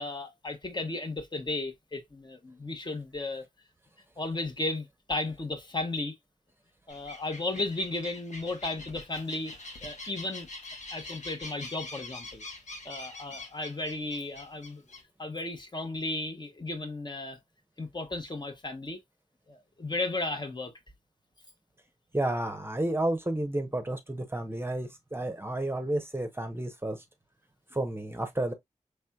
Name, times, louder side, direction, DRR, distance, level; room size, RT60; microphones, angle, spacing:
voice 1, 0.0-3.4 4.2-6.1 6.9-9.5 9.8-10.5 10.9-12.4 12.8-14.8 15.2-17.4 17.8-19.0 19.5-20.7, left 2 dB, 35° left, 0.9 m, -34 dB
sound 1, 6.9-15.0, left 2 dB, 70° left, 1.2 m, -44 dB
voice 2, 22.1-27.0 27.7-28.5, right 1 dB, 20° right, 0.7 m, -31 dB
4.2 x 3.3 x 2.2 m
wide cardioid pair, 70°, 13 cm